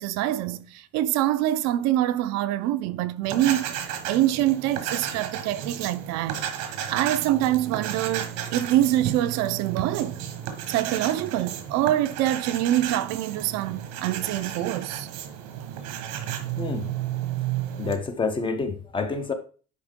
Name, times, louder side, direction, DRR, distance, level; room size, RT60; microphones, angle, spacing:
voice 1, 0.0-6.5 6.9-10.2 10.7-15.1, right 13 dB, 60° right, 0.5 m, -25 dB
sound 1, 3.2-18.0, right 10 dB, 80° right, 1.4 m, -33 dB
voice 2, 17.8-19.3, left 4 dB, 15° left, 0.5 m, -28 dB
9.8 x 3.6 x 3.6 m
cardioid pair, 180°, 30 cm